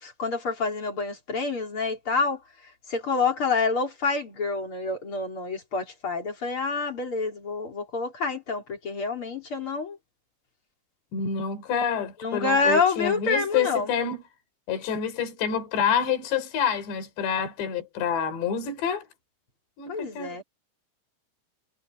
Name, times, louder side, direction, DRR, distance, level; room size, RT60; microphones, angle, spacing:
voice 1, 0.0-2.4 2.9-10.0 12.2-13.9 19.9-20.4, left 4 dB, 30° left, 4.2 m, -27 dB
voice 2, 11.1-14.2 14.7-19.1 19.8-20.4, left 7 dB, 60° left, 6.4 m, -27 dB
omnidirectional pair, 5.6 m